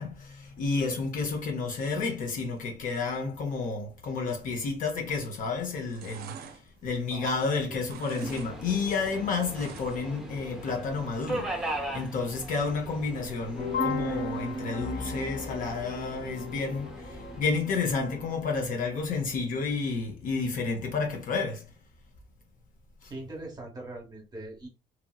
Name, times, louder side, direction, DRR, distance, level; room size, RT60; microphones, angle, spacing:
voice 1, 0.0-6.5 6.8-21.7 23.0-23.1, left 4 dB, 50° left, 0.7 m, -31 dB
sound 1, 5.4-5.5 5.7-7.5 7.8-8.5 8.8-10.2 10.5-10.6, right 6 dB, 65° right, 0.5 m, -45 dB
Subway metro underground, 8.2-17.4, right 1 dB, 5° right, 0.7 m, -40 dB
sound 2, 13.6-18.5, left 2 dB, 65° left, 1.2 m, -35 dB
voice 2, 23.1-24.7, right 2 dB, 25° right, 1.0 m, -41 dB
2.9 x 2.7 x 2.2 m
cardioid pair, 110°, 17 cm